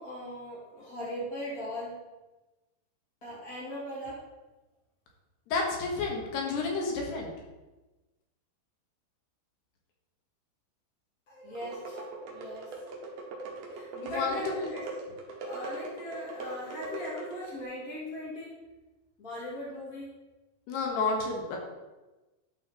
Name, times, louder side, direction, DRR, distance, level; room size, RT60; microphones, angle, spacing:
voice 1, 0.0-2.0 3.2-4.2 11.3-12.7 13.7-14.8 15.4-18.5 19.2-20.1, equal, 40° left, -8 dB, 1.3 m, -39 dB
voice 2, 5.5-7.3 13.9-14.7 20.7-21.6, left 3 dB, 75° left, 0 dB, 3.3 m, -31 dB
spinning.drum, 11.6-17.6, right 2 dB, 70° right, 1.7 m, -40 dB
11.5 x 4.3 x 4.3 m, 1.1 s
omnidirectional pair, 5.0 m